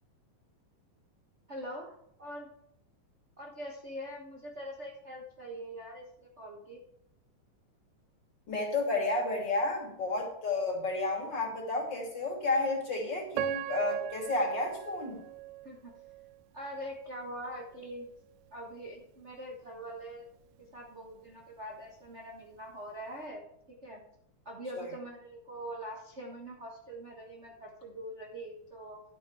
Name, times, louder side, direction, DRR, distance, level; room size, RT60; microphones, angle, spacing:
voice 1, 1.5-2.5 3.4-6.8 15.6-15.9 16.5-18.1 18.5-20.2 20.7-23.4 23.8-24.0 24.4-29.0, equal, 60° right, -1 dB, 0.7 m, -43 dB
voice 2, 8.5-15.2 24.8-24.9, left 2 dB, 35° left, 0 dB, 3.3 m, -31 dB
Piano, 13.3-16.4 16.9-17.0 17.7-17.9, right 17 dB, 90° right, 2.2 m, -38 dB
12.0 x 7.6 x 4.9 m, 0.76 s
omnidirectional pair, 3.7 m